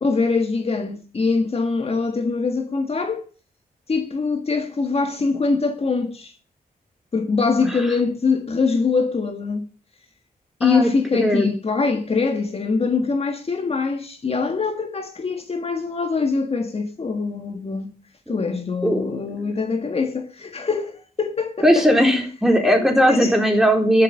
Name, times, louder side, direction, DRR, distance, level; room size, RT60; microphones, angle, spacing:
voice 1, 0.0-3.2 3.9-6.3 7.1-9.7 10.6-17.9 18.3-22.2 22.8-23.4, left 4 dB, 40° left, 1.7 m, -23 dB
voice 2, 11.2-11.5 18.3-18.4 18.8-19.2 21.6-24.0, equal, 5° right, 3.9 m, -18 dB
12.0 x 7.1 x 8.9 m
cardioid pair, 95°, 15 cm